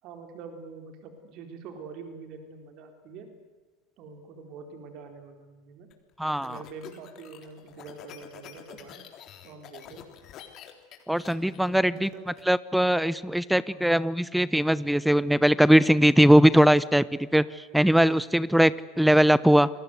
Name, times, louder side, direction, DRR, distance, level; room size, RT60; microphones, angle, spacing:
voice 1, 0.0-3.3 4.0-5.9 6.4-9.1 9.4-10.0 11.6-12.3 13.7-13.8 17.4-17.5, right 5 dB, 50° right, 5 dB, 4.3 m, -45 dB
sound 1, 5.9-12.4, left 10 dB, 45° left, 3.7 m, -48 dB
voice 2, 6.2-6.6 11.1-12.1 12.5-17.0 17.3-17.4 17.7-19.7, equal, ahead, 19 dB, 0.8 m, -20 dB
28.0 x 21.5 x 8.1 m, 1.3 s
figure-of-eight pair, 80°, 0 cm